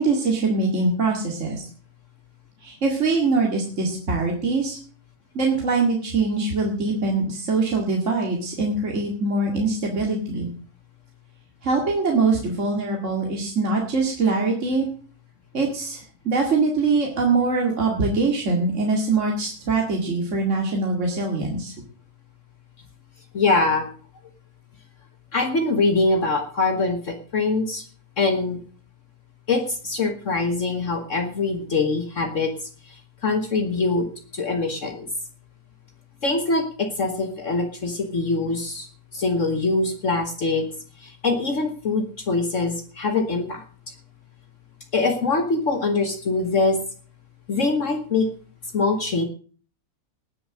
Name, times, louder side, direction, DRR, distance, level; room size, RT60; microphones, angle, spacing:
voice 1, 0.0-1.6 2.6-4.8 5.3-10.5 11.6-14.9 15.5-21.7, right 3 dB, 50° right, 0 dB, 2.5 m, -23 dB
voice 2, 23.3-23.9 25.3-27.8 28.2-28.6 29.5-32.5 33.2-34.1 34.3-35.1 36.2-38.9 39.1-40.7 41.0-43.6 44.9-46.8 47.5-48.3 48.7-49.2, left 3 dB, 55° left, 5 dB, 1.6 m, -23 dB
19.0 x 7.0 x 6.3 m, 0.43 s
omnidirectional pair, 1.6 m